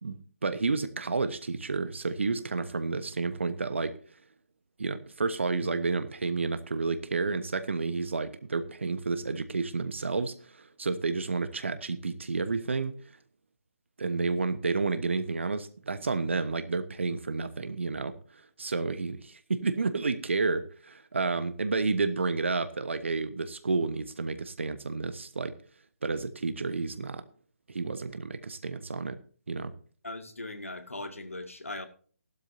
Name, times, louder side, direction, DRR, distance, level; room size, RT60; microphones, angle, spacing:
voice 1, 0.0-3.9 4.8-12.9 14.0-25.5 26.0-27.2 27.7-29.2 29.5-29.7, right 4 dB, 55° right, 1.1 m, -30 dB
voice 2, 30.0-31.9, left 2 dB, 70° left, 2.2 m, -39 dB
16.0 x 12.0 x 2.7 m
figure-of-eight pair, 145°, 8 cm